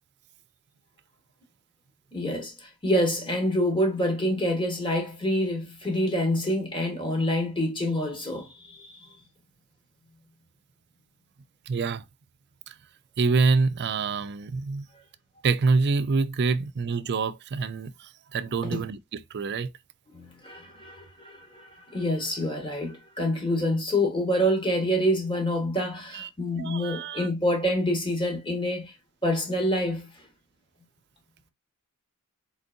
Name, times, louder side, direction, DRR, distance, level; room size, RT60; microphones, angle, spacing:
voice 1, 2.1-9.0 18.6-18.9 20.1-28.9 29.2-30.1, equal, 20° left, 1.8 m, -27 dB
voice 2, 11.7-12.0 12.7-12.8 13.2-14.9 15.4-19.7 26.1-26.3 26.6-27.3, right 4 dB, 50° right, 0.5 m, -26 dB
4.4 x 4.0 x 2.5 m
head